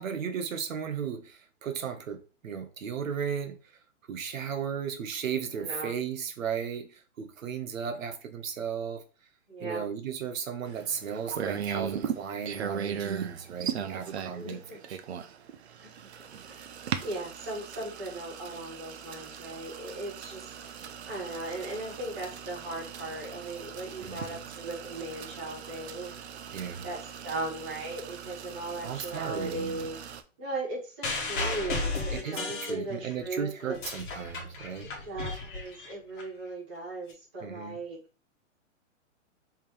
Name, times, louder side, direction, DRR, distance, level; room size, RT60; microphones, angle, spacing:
voice 1, 0.0-3.6 4.1-9.0 9.6-15.0 24.0-24.4 26.5-26.9 28.8-29.9 32.1-34.9 37.4-37.8, right 7 dB, 85° right, 1.1 m, -35 dB
voice 2, 5.6-5.9 9.5-9.9 14.3-14.8 15.8-15.9 16.5-16.7 17.0-20.5 21.1-26.1 26.8-27.0 27.2-30.0 30.4-33.8 35.0-38.0, right 2 dB, 10° right, 0.5 m, -37 dB
sound 1, 10.7-30.2, right 8 dB, 55° right, 0.6 m, -39 dB
sound 2, 31.0-33.2 33.6-36.2 37.1-37.2, left 3 dB, 40° left, 1.1 m, -34 dB
3.6 x 2.9 x 4.5 m
hypercardioid pair, 175°, 39 cm